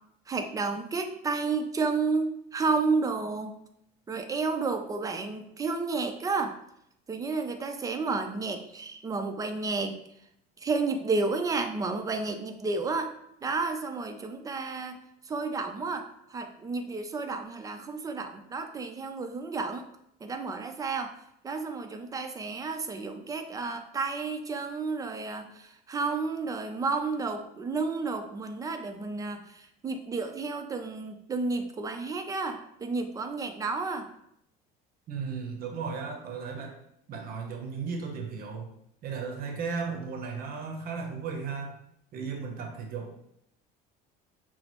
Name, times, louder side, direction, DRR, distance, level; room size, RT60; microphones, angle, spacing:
voice 1, 0.3-3.5 4.1-6.5 7.1-9.9 10.6-13.1 13.4-15.0 15.3-19.9 20.2-21.1 21.4-34.1, right 4 dB, 20° right, 6 dB, 0.4 m, -31 dB
voice 2, 35.1-36.8 37.1-38.7 39.0-41.7 42.1-43.1, right 5 dB, 50° right, 3 dB, 0.7 m, -35 dB
5.8 x 2.0 x 3.0 m, 0.75 s
cardioid pair, 120°, 19 cm